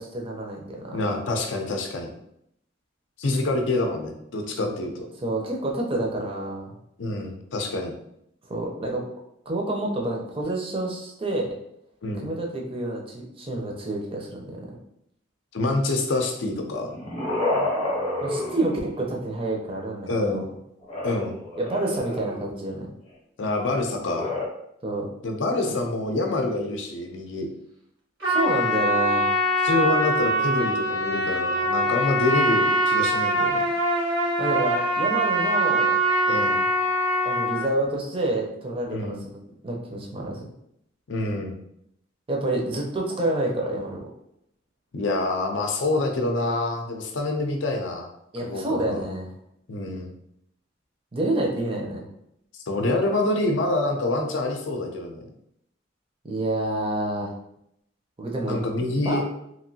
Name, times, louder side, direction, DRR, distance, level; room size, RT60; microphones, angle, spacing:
voice 1, 0.0-1.0 4.6-4.8 5.2-6.7 8.5-9.0 9.5-11.5 12.2-14.6 18.2-20.5 21.6-22.9 24.8-25.1 28.2-29.3 34.4-36.0 37.2-40.5 42.3-44.1 48.3-49.3 51.1-52.1 56.2-57.3 58.2-58.6 59.0-59.2, right 2 dB, 30° right, 0 dB, 0.5 m, -28 dB
voice 2, 0.9-2.1 3.2-5.1 7.0-7.9 12.0-12.3 15.5-16.9 20.1-20.5 21.0-21.4 23.4-24.3 25.2-27.5 29.6-33.6 36.3-36.6 38.9-39.2 41.1-41.6 44.9-48.1 48.4-49.0 49.7-50.1 52.7-55.3 58.5-59.2, left 2 dB, 70° left, 3 dB, 0.5 m, -26 dB
sound 1, 16.7-19.3 20.8-22.6 24.0-24.5, left 2 dB, 35° left, 0.7 m, -29 dB
Trumpet, 28.2-37.7, equal, 80° right, 1.1 m, -23 dB
3.0 x 2.5 x 2.7 m, 0.76 s
head